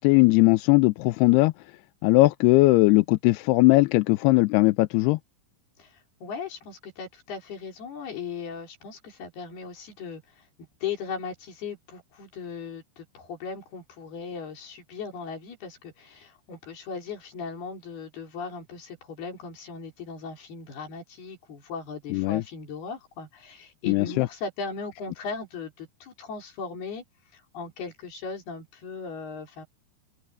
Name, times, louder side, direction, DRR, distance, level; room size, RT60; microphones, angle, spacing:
voice 1, 0.0-1.5 2.0-5.2 22.1-22.4 23.9-24.3, left 22 dB, 85° left, 2.6 m, -19 dB
voice 2, 5.8-27.0 27.3-29.7, left 5 dB, 70° left, 6.4 m, -38 dB
omnidirectional pair, 4.7 m